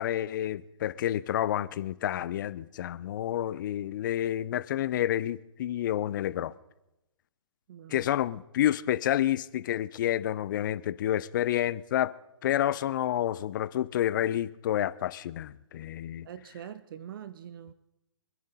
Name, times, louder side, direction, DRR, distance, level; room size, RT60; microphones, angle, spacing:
voice 1, 0.0-6.5 7.9-12.1 12.4-16.3, left 12 dB, 40° left, 0.6 m, -29 dB
voice 2, 7.7-8.1 16.2-17.7, right 9 dB, 45° right, 0.7 m, -44 dB
25.0 x 10.5 x 4.1 m
hypercardioid pair, 140°, 15 cm